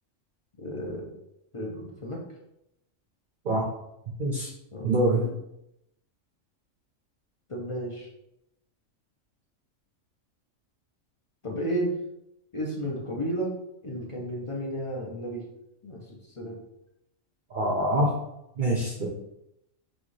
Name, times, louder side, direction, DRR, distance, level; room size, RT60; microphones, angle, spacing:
voice 1, 0.6-1.2 1.5-2.2 4.7-4.9 5.2-5.3 7.5-8.1 11.4-11.9 12.5-13.6 13.8-15.4 15.8-16.6, right 1 dB, 40° left, -2 dB, 0.4 m, -33 dB
voice 2, 4.2-4.5 4.8-5.2 17.5-18.1 18.6-19.1, right 1 dB, 50° right, -1 dB, 0.7 m, -24 dB
6.2 x 2.3 x 3.2 m, 0.84 s
omnidirectional pair, 1.4 m